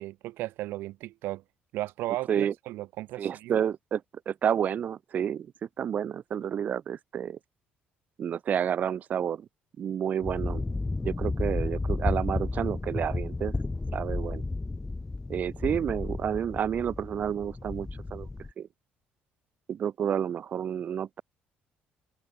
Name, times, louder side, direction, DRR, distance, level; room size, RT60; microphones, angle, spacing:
voice 1, 0.0-1.4 1.7-3.6, right 17 dB, 85° right, 4.8 m, -35 dB
voice 2, 3.2-7.4 8.2-9.5 9.8-10.6 11.0-13.5 13.9-14.4 15.3-18.3 18.6-18.7 19.7-21.2, right 8 dB, 45° right, 1.4 m, -30 dB
sound 1, 10.2-18.5, left 3 dB, 15° left, 4.6 m, -32 dB
open air
cardioid pair, 120°, 4 cm